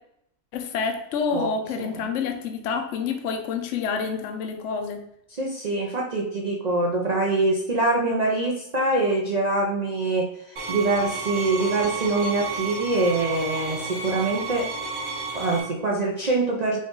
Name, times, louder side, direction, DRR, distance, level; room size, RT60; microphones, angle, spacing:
voice 1, 0.5-5.0, left 5 dB, 60° left, 5 dB, 0.9 m, -28 dB
voice 2, 5.3-14.7 15.3-16.8, right 2 dB, 45° right, -1 dB, 0.5 m, -24 dB
sound 1, 10.6-15.6, right 4 dB, 65° right, 1.6 m, -32 dB
5.4 x 2.5 x 3.8 m, 0.75 s
omnidirectional pair, 1.6 m